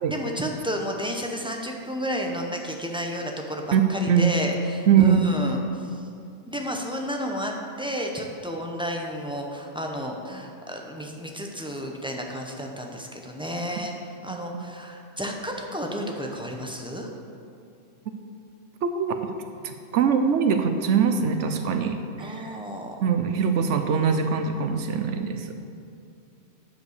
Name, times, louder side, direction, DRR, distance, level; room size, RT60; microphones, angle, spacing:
voice 1, 0.1-6.0 6.5-17.1 22.2-23.0, equal, 5° right, 1 dB, 0.6 m, -32 dB
voice 2, 4.9-5.3 14.5-14.7 18.8-19.2 19.6-22.6 23.0-25.5, right 7 dB, 70° right, 7 dB, 0.9 m, -22 dB
9.4 x 5.1 x 6.6 m, 2.4 s
omnidirectional pair, 1.3 m